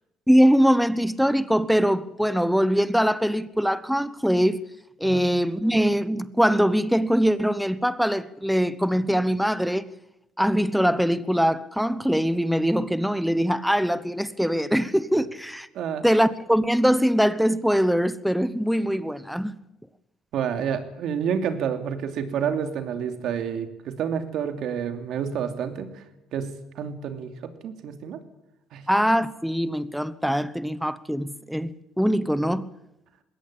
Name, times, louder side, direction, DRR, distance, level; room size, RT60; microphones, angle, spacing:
voice 1, 0.3-4.6 5.0-9.9 10.4-15.7 16.0-19.5 28.9-32.7, equal, ahead, 1.0 m, -22 dB
voice 2, 15.7-16.0 20.3-26.0 26.3-27.3 27.6-28.2 28.7-28.8, right 7 dB, 65° right, 2.8 m, -29 dB
21.0 x 17.5 x 8.7 m
cardioid pair, 110°, 0 cm